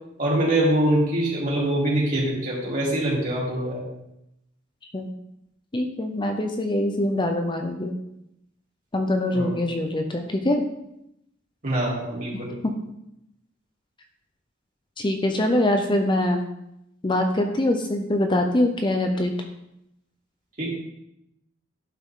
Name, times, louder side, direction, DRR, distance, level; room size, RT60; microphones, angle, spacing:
voice 1, 0.2-3.8 9.3-9.6 11.6-12.5 20.6-20.7, right 1 dB, 40° right, -6 dB, 3.6 m, -24 dB
voice 2, 5.7-7.9 8.9-10.6 12.6-12.7 15.0-16.4 17.0-19.3, left 1 dB, 25° left, 4 dB, 0.7 m, -23 dB
11.5 x 5.8 x 3.8 m, 0.82 s
head